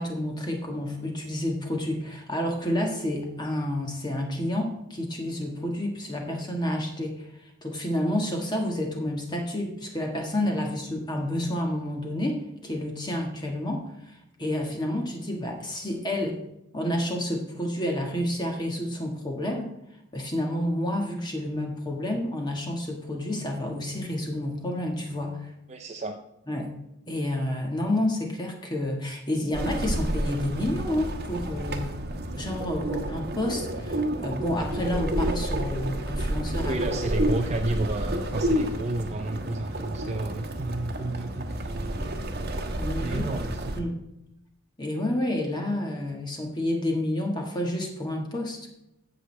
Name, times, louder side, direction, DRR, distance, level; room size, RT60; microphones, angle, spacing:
voice 1, 0.0-7.2 7.6-13.9 14.4-16.4 16.7-19.7 20.1-25.5 26.5-26.7 27.1-32.1 32.3-36.8 42.0-42.1 42.7-43.2 43.8-44.0 44.8-48.7, left 1 dB, 20° left, 1 dB, 1.5 m, -29 dB
voice 2, 25.7-26.2 36.7-42.0 43.0-43.6, right 2 dB, 35° right, 5 dB, 0.5 m, -32 dB
sound 1, 29.5-43.8, right 1 dB, 50° right, 1.2 m, -30 dB
16.0 x 6.2 x 3.3 m, 0.86 s
head